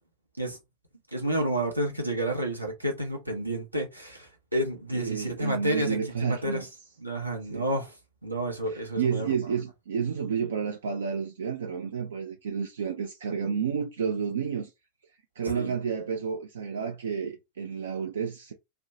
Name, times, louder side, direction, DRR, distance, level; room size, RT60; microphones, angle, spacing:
voice 1, 1.1-6.7 7.0-7.9 8.2-9.3 15.5-15.7, right 1 dB, 85° right, 0.8 m, -30 dB
voice 2, 4.9-6.7 7.5-7.7 8.7-14.7 15.4-18.5, right 6 dB, 65° right, 0.3 m, -30 dB
2.6 x 2.1 x 2.7 m
figure-of-eight pair, 90°, 0 cm